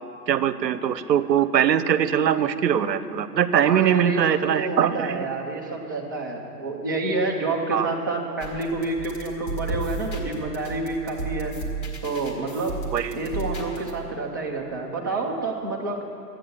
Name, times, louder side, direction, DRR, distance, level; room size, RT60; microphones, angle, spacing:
voice 1, 0.3-5.3 7.7-7.9 12.9-13.2, right 9 dB, 80° right, 13 dB, 0.8 m, -22 dB
voice 2, 3.6-11.5 12.0-12.8 13.2-16.0, right 3 dB, 15° right, -1 dB, 0.4 m, -28 dB
sound 1, 8.4-13.9, right 3 dB, 30° left, 1.9 m, -34 dB
13.0 x 9.3 x 7.0 m, 2.6 s
hypercardioid pair, 135°, 50 cm